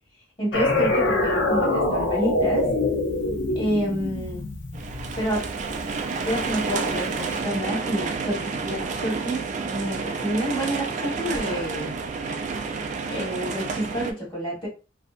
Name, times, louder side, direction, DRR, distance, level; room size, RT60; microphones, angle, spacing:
voice 1, 0.4-2.7 3.5-4.4 5.2-5.5 6.2-12.0 13.1-14.7, right 1 dB, 25° left, -4 dB, 1.2 m, -28 dB
sound 1, 0.5-5.8, left 2 dB, 75° left, 0.5 m, -24 dB
sound 2, 4.7-14.1, right 4 dB, 40° right, 0.3 m, -30 dB
2.7 x 2.0 x 2.4 m, 0.33 s
head